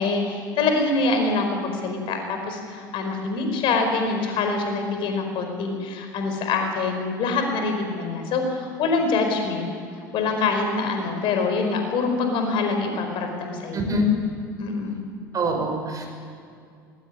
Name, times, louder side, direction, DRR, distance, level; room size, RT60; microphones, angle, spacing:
voice 1, 0.0-9.7 10.1-13.8 14.6-15.0, left 3 dB, 50° left, 5 dB, 4.9 m, -25 dB
voice 2, 13.7-14.1 15.3-16.1, equal, 35° right, 3 dB, 5.8 m, -24 dB
20.5 x 19.5 x 9.9 m, 2.3 s
figure-of-eight pair, 65°, 11 cm